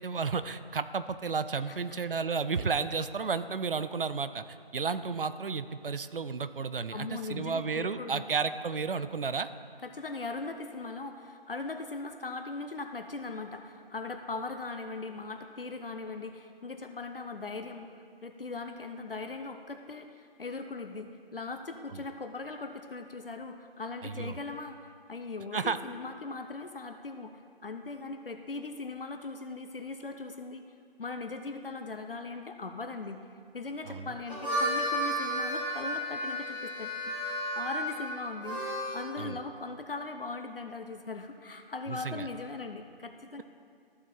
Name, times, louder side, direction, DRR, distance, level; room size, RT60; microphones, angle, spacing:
voice 1, 0.0-9.5 21.9-22.0 24.0-24.4 25.5-25.8 33.9-34.1 39.2-39.4 41.9-42.3, right 5 dB, 65° right, 12 dB, 0.5 m, -32 dB
voice 2, 6.9-8.2 9.8-30.6 31.0-33.2 33.5-36.9 37.2-38.6 38.9-43.4, left 3 dB, 65° left, 6 dB, 0.6 m, -39 dB
Harmonica, 34.1-39.1, equal, 10° right, 0.9 m, -33 dB
14.0 x 4.7 x 3.8 m, 2.2 s
figure-of-eight pair, 170°, 30 cm